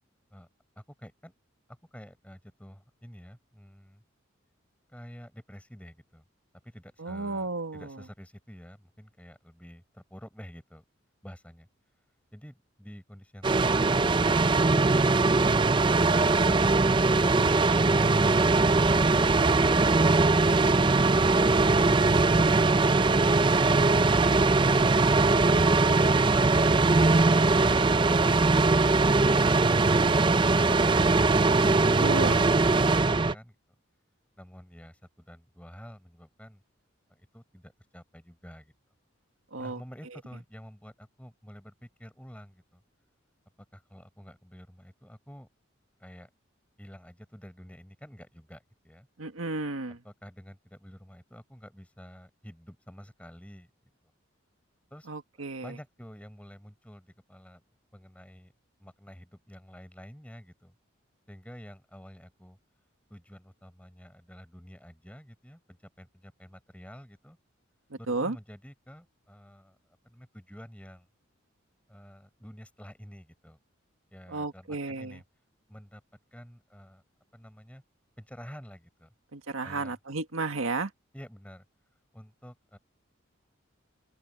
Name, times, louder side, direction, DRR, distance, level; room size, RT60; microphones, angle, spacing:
voice 1, 0.8-1.3 1.7-4.0 4.9-6.2 6.6-10.8 11.2-11.7 12.3-13.5 34.4-36.6 37.1-38.7 39.6-42.8 43.7-45.5 46.0-46.3 46.8-49.1 49.9-53.7 54.9-55.1 55.6-57.6 57.9-58.5 58.8-60.7 61.3-62.6 63.1-67.4 68.0-71.1 71.9-73.6 74.1-75.2 75.7-76.0 76.3-77.0 77.3-77.8 78.2-79.1 79.6-80.0 81.1-81.7 82.1-82.8, equal, 5° left, 5.3 m, -49 dB
voice 2, 7.0-7.9 32.0-32.4 39.5-39.8 49.2-50.0 55.1-55.8 67.9-68.4 74.3-75.2 79.3-80.9, right 3 dB, 90° right, 1.7 m, -32 dB
sound 1, 13.4-33.3, right 3 dB, 25° right, 0.5 m, -21 dB
open air
head